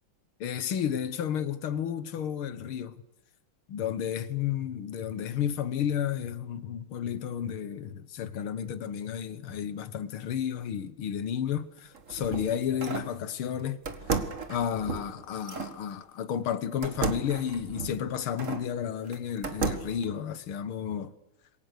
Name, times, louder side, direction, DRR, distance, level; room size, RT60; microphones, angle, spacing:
voice 1, 0.4-3.0 3.7-13.8 14.1-14.2 14.5-21.1, left 9 dB, 85° left, 2.1 m, -32 dB
sound 1, 11.8-13.1 13.9-15.8 16.8-18.7 19.1-20.0, right 5 dB, 40° right, 2.0 m, -34 dB
27.5 x 23.0 x 6.7 m
omnidirectional pair, 2.3 m